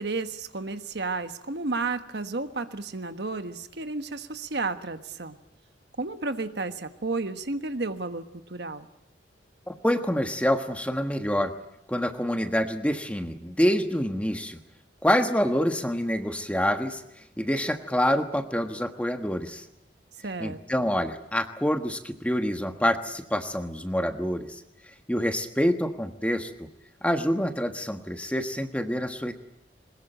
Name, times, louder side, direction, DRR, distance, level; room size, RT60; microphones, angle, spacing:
voice 1, 0.0-5.4 6.0-8.9 20.2-20.9, right 3 dB, 65° right, 9 dB, 1.3 m, -32 dB
voice 2, 9.7-11.5 11.9-14.6 15.0-17.0 17.4-19.6 20.4-24.6 25.1-26.5 27.0-29.3, equal, 5° left, 7 dB, 1.3 m, -26 dB
22.0 x 20.5 x 8.9 m, 0.81 s
head